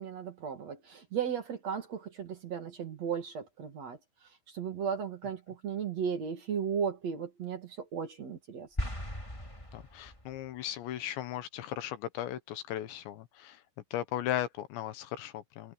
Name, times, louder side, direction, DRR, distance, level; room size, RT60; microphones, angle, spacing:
voice 1, 0.0-4.0 4.5-8.7, right 7 dB, 45° right, 2.6 m, -35 dB
sound 1, 8.8-10.4, equal, 10° left, 1.9 m, -38 dB
voice 2, 9.7-13.6 13.9-15.7, left 12 dB, 70° left, 3.2 m, -37 dB
omnidirectional pair, 5.8 m